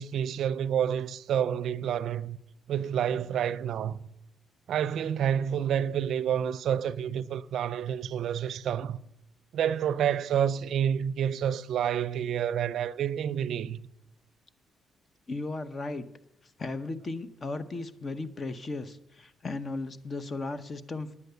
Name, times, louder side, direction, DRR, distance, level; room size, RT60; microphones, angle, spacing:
voice 1, 0.0-2.4 2.7-4.0 4.7-9.0 9.5-13.9, right 9 dB, 70° right, 0.4 m, -29 dB
voice 2, 15.3-16.1 16.6-21.2, left 3 dB, 35° left, 0.8 m, -36 dB
9.7 x 9.2 x 6.8 m
cardioid pair, 90°, 0 cm